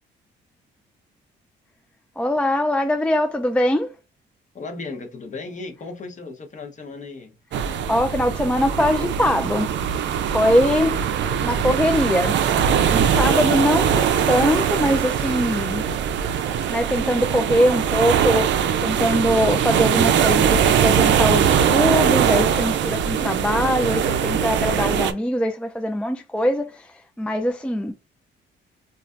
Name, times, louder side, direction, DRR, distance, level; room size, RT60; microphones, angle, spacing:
voice 1, 2.2-3.9 7.7-9.7 10.2-11.0 11.4-12.4 12.9-15.8 16.7-27.9, left 1 dB, 5° left, 0.3 m, -22 dB
voice 2, 4.5-7.4, left 3 dB, 40° left, 0.9 m, -35 dB
sound 1, 7.5-25.1, right 8 dB, 65° right, 0.5 m, -21 dB
3.2 x 2.4 x 2.5 m
cardioid pair, 90°, 20 cm